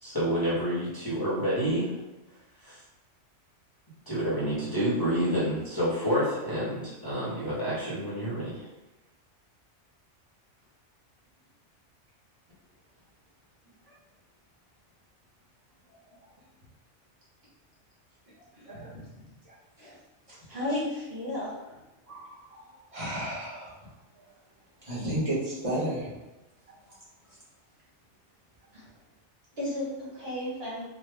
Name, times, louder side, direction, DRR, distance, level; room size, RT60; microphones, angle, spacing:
voice 1, 0.0-1.9 2.6-2.8 4.1-8.7, equal, 20° left, -11 dB, 1.0 m, -28 dB
voice 2, 20.5-21.7 28.7-28.8 29.6-30.8, left 1 dB, 55° right, -7 dB, 1.4 m, -34 dB
voice 3, 22.1-23.7 24.8-26.1, right 1 dB, 30° right, -10 dB, 1.4 m, -33 dB
3.3 x 2.3 x 3.3 m, 1.0 s
omnidirectional pair, 1.2 m